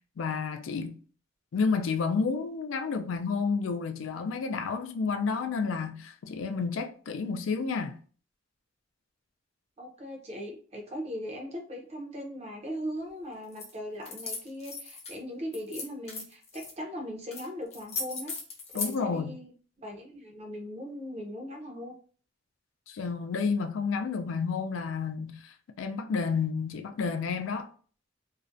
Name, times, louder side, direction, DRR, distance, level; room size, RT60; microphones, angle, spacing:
voice 1, 0.2-1.0 1.5-8.0 18.7-19.4 22.9-27.7, left 5 dB, 80° left, 0.4 m, -30 dB
voice 2, 9.8-18.3 18.7-19.5 19.8-21.9, equal, 35° right, 0.5 m, -39 dB
sound 1, 13.5-13.7 14.0-15.2 15.5-16.7 17.3-17.5 17.7-18.9, left 4 dB, 35° left, 0.6 m, -37 dB
2.4 x 2.1 x 2.5 m
head